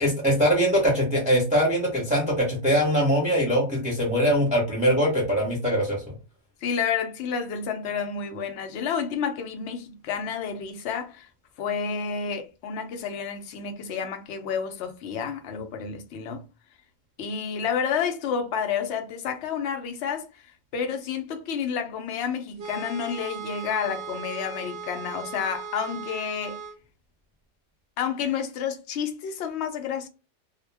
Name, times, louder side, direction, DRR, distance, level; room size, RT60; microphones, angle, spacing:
voice 1, 0.0-6.0, equal, 5° right, 0.8 m, -22 dB
voice 2, 6.6-11.3 11.6-16.4 17.2-20.3 20.7-26.6 28.0-30.1, left 7 dB, 65° left, 0.7 m, -30 dB
sound 1, 22.6-26.8, right 5 dB, 55° right, 0.7 m, -38 dB
2.3 x 2.2 x 3.2 m
omnidirectional pair, 1.5 m